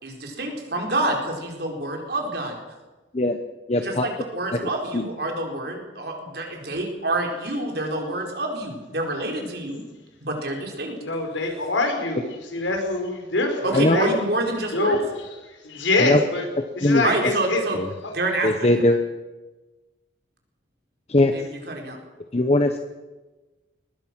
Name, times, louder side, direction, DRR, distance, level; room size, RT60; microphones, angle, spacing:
voice 1, 0.0-2.5 3.8-9.8 10.2-10.9 13.6-15.0 17.0-17.8 18.1-18.7 21.3-22.0, right 2 dB, 55° right, 2 dB, 4.6 m, -27 dB
voice 2, 3.7-4.1 4.9-5.0 13.7-14.0 16.0-16.2 16.8-17.0 18.4-19.0 21.1-21.3 22.3-22.8, left 1 dB, 35° left, 6 dB, 1.0 m, -19 dB
voice 3, 11.0-14.1 14.7-15.3 15.6-16.5 16.7-17.6 18.0-18.1, left 2 dB, 85° left, 3 dB, 4.9 m, -25 dB
22.5 x 19.5 x 6.1 m, 1.2 s
head